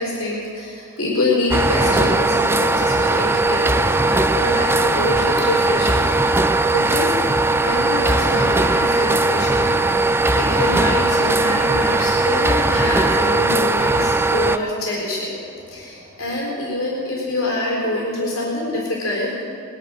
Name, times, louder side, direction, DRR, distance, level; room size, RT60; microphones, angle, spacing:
voice 1, 0.0-7.2 7.6-15.3 15.7-19.4, left 2 dB, 75° left, -4 dB, 4.1 m, -26 dB
sound 1, 1.5-14.6, right 2 dB, 10° right, 0.4 m, -18 dB
sound 2, 4.7-16.3, right 1 dB, 30° right, 1.6 m, -40 dB
19.5 x 11.5 x 6.3 m, 2.5 s
head